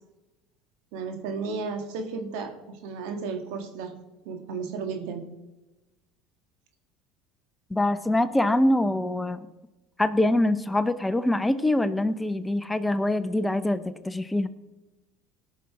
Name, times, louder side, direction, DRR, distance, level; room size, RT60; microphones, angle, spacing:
voice 1, 0.9-4.0 4.3-5.2, right 5 dB, 75° right, 5 dB, 1.9 m, -33 dB
voice 2, 7.7-9.5 10.0-14.5, left 1 dB, 10° left, 13 dB, 0.7 m, -24 dB
18.0 x 6.2 x 4.7 m, 1.1 s
supercardioid pair, 90°, 0 cm